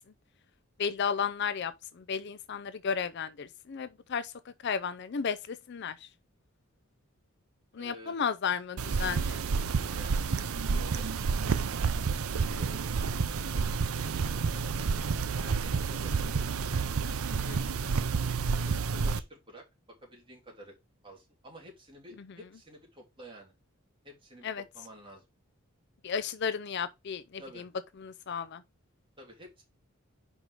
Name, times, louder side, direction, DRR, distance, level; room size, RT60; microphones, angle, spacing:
voice 1, 0.8-4.3 4.6-6.1 7.7-9.4 17.5-17.8 22.2-22.4 24.4-24.6 26.0-27.7 28.0-28.6, left 6 dB, 55° left, 0.5 m, -34 dB
voice 2, 7.8-8.2 10.0-11.1 12.3-12.9 14.0-14.7 15.3-16.7 18.4-19.6 20.0-20.7 21.0-23.5 24.0-25.3 27.4-27.7 29.2-29.6, equal, 25° right, 3.2 m, -50 dB
sound 1, 8.8-19.2, right 5 dB, 90° right, 0.6 m, -30 dB
5.4 x 4.8 x 4.9 m
head